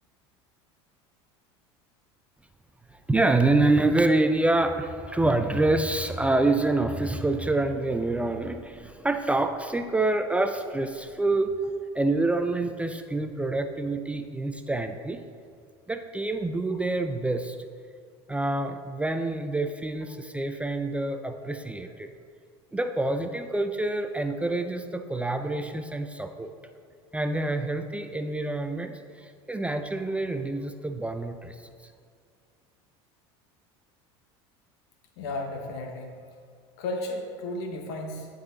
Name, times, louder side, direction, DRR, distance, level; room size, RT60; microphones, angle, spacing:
voice 1, 3.1-11.5 11.9-15.2 15.9-17.6 18.3-22.1 22.7-26.5 27.1-29.0 29.5-31.5, right 2 dB, 10° right, 7 dB, 0.3 m, -26 dB
voice 2, 35.2-36.1 36.8-38.3, left 2 dB, 75° left, 3 dB, 0.8 m, -34 dB
11.0 x 4.0 x 3.9 m, 2.2 s
supercardioid pair, 95°, 14 cm